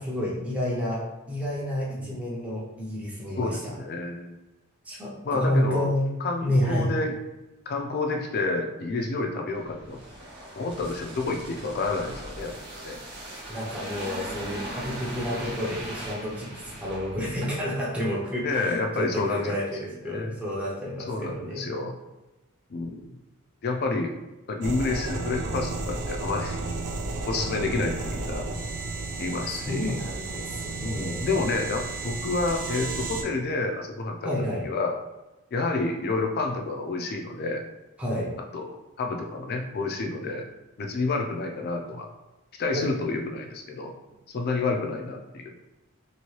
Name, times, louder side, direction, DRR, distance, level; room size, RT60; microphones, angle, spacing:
voice 1, 0.0-3.7 4.8-6.1 6.4-6.9 13.5-21.6 29.4-31.3 34.2-34.7 38.0-38.3 42.7-42.9, left 1 dB, 5° right, -6 dB, 0.6 m, -30 dB
voice 2, 3.4-4.3 5.2-5.9 6.2-7.2 7.7-10.0 10.6-12.5 12.8-13.0 18.4-19.6 20.0-20.3 21.1-22.0 22.7-23.2 23.6-24.2 24.5-26.6 27.3-28.5 29.2-29.9 30.8-34.4 34.6-35.0 35.5-37.6 38.5-40.5 40.8-42.1 42.6-43.9 44.3-45.5, left 3 dB, 45° left, 3 dB, 0.4 m, -29 dB
sound 1, 9.5-17.9 18.2-18.4, right 1 dB, 50° right, 0.8 m, -39 dB
sound 2, 24.6-33.2, right 3 dB, 85° right, 0.5 m, -33 dB
2.9 x 2.7 x 3.0 m, 1.0 s
head